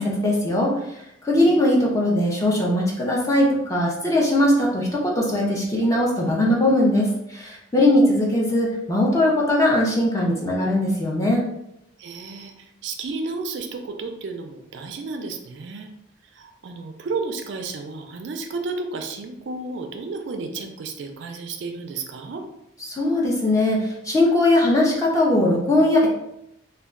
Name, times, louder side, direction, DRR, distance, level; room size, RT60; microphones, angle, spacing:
voice 1, 0.0-11.4 22.9-26.1, left 1 dB, 15° left, -3 dB, 0.4 m, -20 dB
voice 2, 12.0-15.9 16.3-22.4, right 3 dB, 55° right, 4 dB, 0.3 m, -32 dB
2.2 x 2.2 x 3.6 m, 0.82 s
head